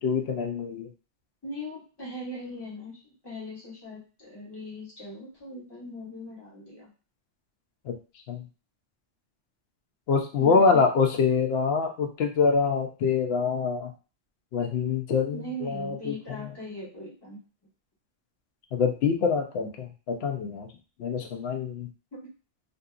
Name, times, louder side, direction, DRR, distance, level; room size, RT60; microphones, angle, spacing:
voice 1, 0.0-0.9 7.9-8.0 8.3-8.4 10.1-13.9 14.5-16.5 18.7-20.7 21.0-21.9, left 5 dB, 65° left, 4 dB, 0.8 m, -25 dB
voice 2, 1.4-6.9 10.4-10.8 15.3-17.4, left 1 dB, 20° left, -7 dB, 1.2 m, -40 dB
2.6 x 2.6 x 2.4 m, 0.34 s
omnidirectional pair, 1.3 m